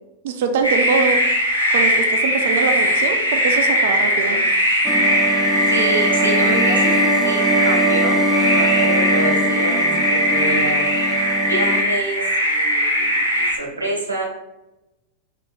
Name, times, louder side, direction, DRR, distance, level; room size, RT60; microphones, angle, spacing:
voice 1, 0.2-1.2 1.7-4.4, right 5 dB, 55° right, 6 dB, 0.5 m, -23 dB
sound 1, 0.6-13.5, equal, 85° left, 1.1 m, -19 dB
voice 2, 4.1-4.4 5.7-6.9 7.2-9.9 10.2-14.2, right 2 dB, 80° right, -2 dB, 1.4 m, -27 dB
sound 2, 4.8-11.8, right 1 dB, ahead, 0.5 m, -22 dB
5.4 x 4.2 x 2.3 m, 0.95 s
figure-of-eight pair, 90°, 0 cm